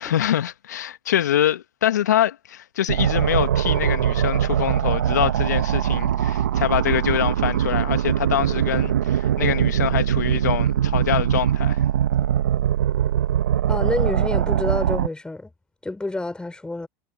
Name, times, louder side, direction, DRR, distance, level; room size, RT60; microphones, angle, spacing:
voice 1, 0.0-11.8, left 11 dB, 80° left, 1.9 m, -24 dB
sound 1, 2.9-15.1, right 10 dB, 85° right, 1.2 m, -21 dB
voice 2, 13.7-15.5 15.8-16.9, left 2 dB, 10° left, 5.0 m, -28 dB
hypercardioid pair, 85°, 9 cm